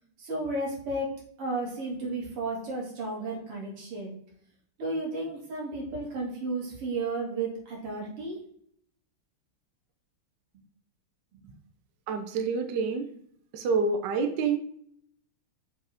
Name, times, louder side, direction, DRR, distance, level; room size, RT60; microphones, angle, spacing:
voice 1, 0.2-4.2 4.8-8.4, right 2 dB, 90° right, -2 dB, 3.0 m, -33 dB
voice 2, 12.1-13.1 13.5-14.6, right 4 dB, 65° right, 7 dB, 1.2 m, -27 dB
6.3 x 4.9 x 3.5 m, 0.66 s
omnidirectional pair, 2.4 m